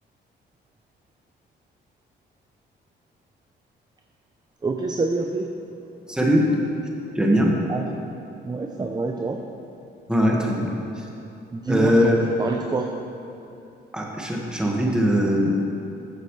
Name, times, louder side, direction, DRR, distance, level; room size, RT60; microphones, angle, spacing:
voice 1, 4.6-5.5 7.7-7.9 8.4-9.4 11.5-12.9, right 3 dB, 20° right, 3 dB, 0.6 m, -26 dB
voice 2, 6.1-6.5 7.2-7.6 10.1-10.7 11.0-11.1 11.7-12.3 13.9-15.6, equal, 5° right, -2 dB, 1.7 m, -20 dB
14.0 x 7.5 x 3.3 m, 3.0 s
cardioid pair, 85°, 20 cm